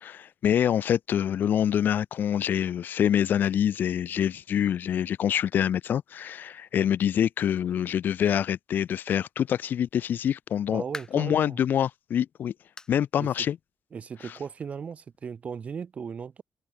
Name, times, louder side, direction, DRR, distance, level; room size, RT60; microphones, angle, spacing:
voice 1, 0.0-10.8 11.1-12.5 12.9-13.6 14.2-14.3, left 9 dB, 55° left, 0.5 m, -26 dB
sound 1, 10.4-11.4 11.9-12.0 12.8-13.0 13.4-13.5 14.0-14.1 15.1-15.2, left 3 dB, 20° left, 2.0 m, -43 dB
voice 2, 10.7-11.6 13.2-13.3 13.9-16.4, right 6 dB, 35° right, 0.6 m, -37 dB
wide cardioid pair, 165°, 4 cm